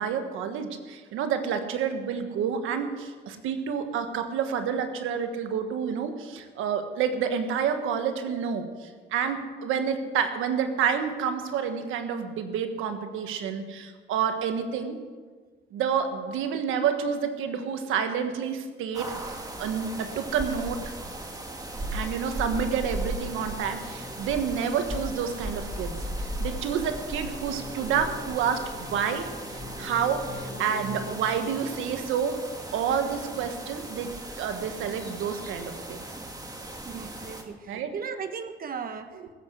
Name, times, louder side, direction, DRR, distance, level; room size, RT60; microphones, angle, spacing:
voice 1, 0.0-15.0 15.7-20.9 21.9-32.4 32.7-36.0 37.7-37.9, right 7 dB, 90° right, 7 dB, 1.4 m, -29 dB
sound 1, 18.9-37.4, right 1 dB, 20° right, 2.3 m, -37 dB
sound 2, 22.2-32.5, left 2 dB, 55° left, 5.4 m, -45 dB
voice 2, 36.9-39.2, right 6 dB, 50° right, 8 dB, 1.3 m, -37 dB
19.0 x 8.0 x 8.1 m, 1.4 s
cardioid pair, 90°, 20 cm